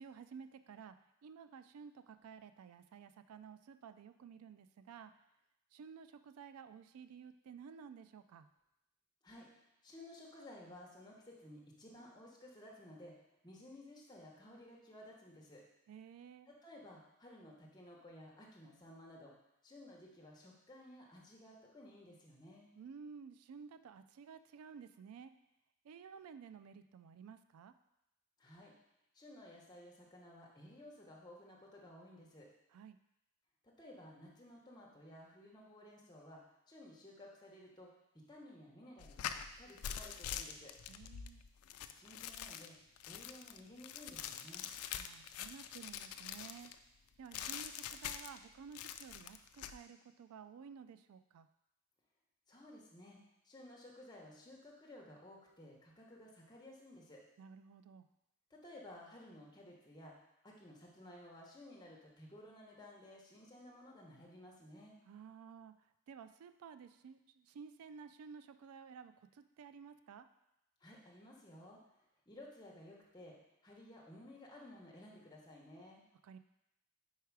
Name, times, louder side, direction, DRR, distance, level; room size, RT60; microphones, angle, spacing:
voice 1, 0.0-5.2 5.7-8.5 15.9-16.5 22.8-25.3 25.8-27.7 32.7-33.0 40.9-41.4 44.9-46.7 47.2-51.5 57.4-58.1 65.1-70.3 76.2-76.4, right 6 dB, 85° right, 11 dB, 0.3 m, -54 dB
voice 2, 9.2-13.2 13.4-15.6 16.5-19.3 19.6-22.7 28.4-28.7 29.1-32.5 33.6-37.9 38.1-40.7 41.9-42.8 43.1-44.7 52.5-53.2 53.4-57.2 58.5-60.2 60.4-65.0 70.8-71.8 72.3-73.4 73.6-76.0, left 1 dB, 20° left, -3 dB, 1.0 m, -55 dB
sound 1, 39.0-46.8 47.3-48.4 48.7-49.8, left 9 dB, 85° left, 0.3 m, -45 dB
4.7 x 4.6 x 4.7 m, 0.88 s
head